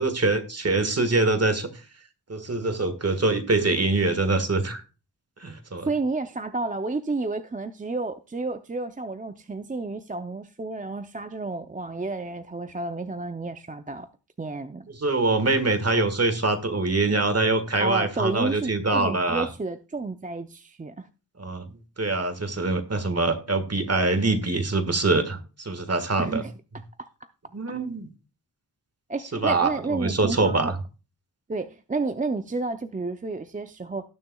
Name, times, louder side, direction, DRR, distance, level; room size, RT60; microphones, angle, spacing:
voice 1, 0.0-1.7 2.3-4.8 5.4-5.9 15.0-19.5 21.4-21.7 22.0-26.4 27.5-28.1 29.3-30.8, right 3 dB, 35° right, 1.6 m, -24 dB
voice 2, 5.8-14.1 14.4-14.9 17.8-21.1 26.2-26.5 27.0-27.1 29.1-30.7 31.5-34.1, right 3 dB, 20° right, 0.5 m, -31 dB
18.0 x 6.8 x 2.3 m
wide cardioid pair, 90°, 43 cm